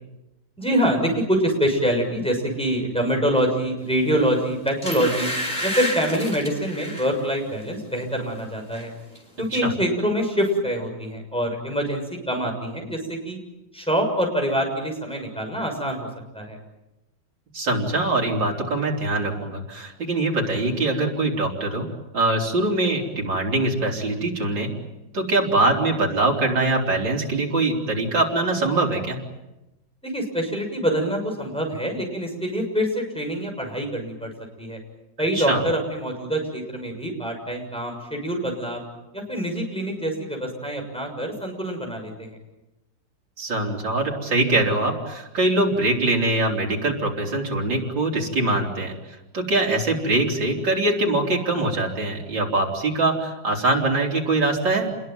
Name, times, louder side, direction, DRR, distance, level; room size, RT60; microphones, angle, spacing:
voice 1, 0.6-5.3 5.6-8.9 9.4-13.4 13.7-16.1 16.3-16.6 30.0-34.3 34.6-34.8 35.2-38.8 39.1-42.4, equal, 5° left, 2 dB, 6.6 m, -25 dB
sound 1, 4.1-4.3 4.8-7.1 7.6-7.8 8.1-8.9 9.1-9.2, equal, 20° left, 5.3 m, -30 dB
voice 2, 17.5-21.9 22.1-24.7 25.1-29.2 35.3-35.6 43.4-49.0 49.3-54.9, right 2 dB, 85° right, -1 dB, 4.6 m, -23 dB
28.5 x 21.5 x 9.4 m, 0.97 s
omnidirectional pair, 2.0 m